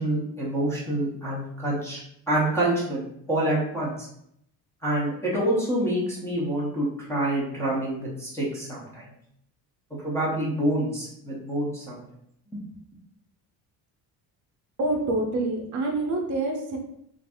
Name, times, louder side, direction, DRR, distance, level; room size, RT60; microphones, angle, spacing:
voice 1, 0.0-2.0 2.3-4.1 4.8-9.1 10.0-12.0, right 1 dB, 5° left, -8 dB, 0.5 m, -27 dB
voice 2, 14.8-16.8, right 2 dB, 45° right, 1 dB, 0.6 m, -26 dB
2.5 x 2.5 x 3.4 m, 0.74 s
cardioid pair, 175°, 40 cm